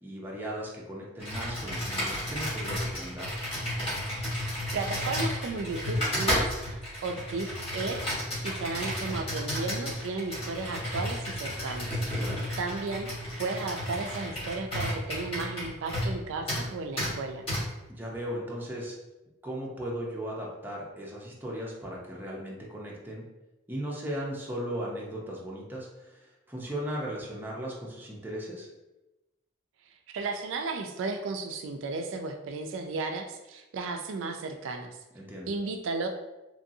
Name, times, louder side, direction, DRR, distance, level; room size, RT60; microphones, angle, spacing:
voice 1, 0.0-3.3 12.1-12.4 17.9-18.9 19.4-23.2 23.7-28.7 35.1-35.5, equal, 10° right, -3 dB, 0.5 m, -37 dB
Computer keyboard, 1.2-16.2 16.5-16.7 17.0-17.1 17.5-17.6, equal, 30° left, 1.3 m, -32 dB
voice 2, 4.3-7.5 7.7-8.0 8.4-12.0 12.6-13.1 13.4-17.4 30.1-35.0 35.5-36.1, right 3 dB, 75° right, 4 dB, 0.3 m, -34 dB
3.0 x 2.6 x 2.6 m, 1.0 s
head